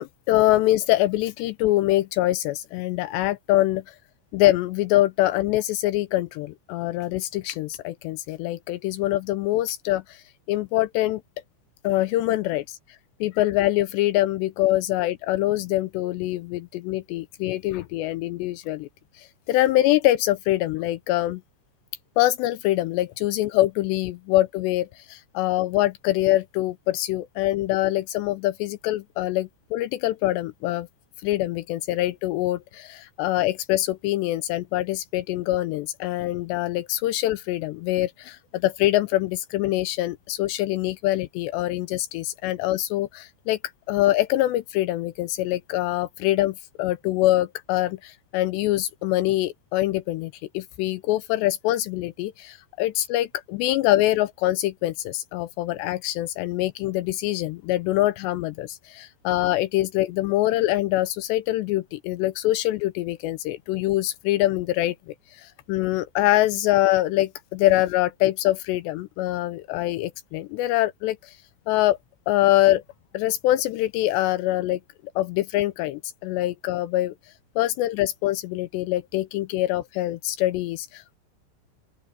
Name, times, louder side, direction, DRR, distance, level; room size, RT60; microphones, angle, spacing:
voice 1, 0.0-4.0 4.3-11.2 11.8-12.8 13.2-18.9 19.2-21.4 22.2-30.9 31.2-43.6 43.9-71.4 71.7-72.0 72.3-72.8 73.1-74.8 75.2-77.1 77.6-81.2, left 15 dB, 80° left, 2.6 m, -24 dB
open air
omnidirectional pair, 5.4 m